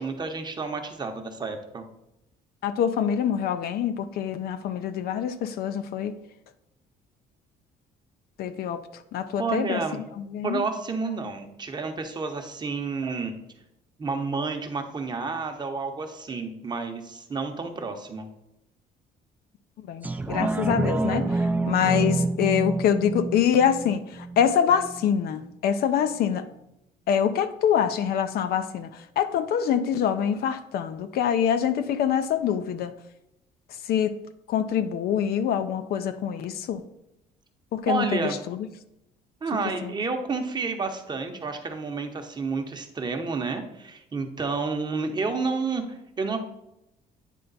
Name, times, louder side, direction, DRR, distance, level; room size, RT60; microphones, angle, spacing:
voice 1, 0.0-1.8 9.4-10.0 10.4-13.3 14.0-18.3 37.9-38.4 39.4-46.4, right 4 dB, 25° right, 5 dB, 0.8 m, -30 dB
voice 2, 2.6-6.1 8.4-8.8 9.1-9.8 10.2-10.6 19.9-26.4 27.1-32.9 33.9-34.1 34.5-36.8 37.7-38.2 38.5-38.7 39.8-39.9, left 8 dB, 65° left, 11 dB, 0.5 m, -25 dB
sound 1, 20.0-25.1 25.5-25.6, right 2 dB, 10° right, 0.4 m, -27 dB
9.1 x 3.3 x 4.0 m, 0.84 s
cardioid pair, 110°, 17 cm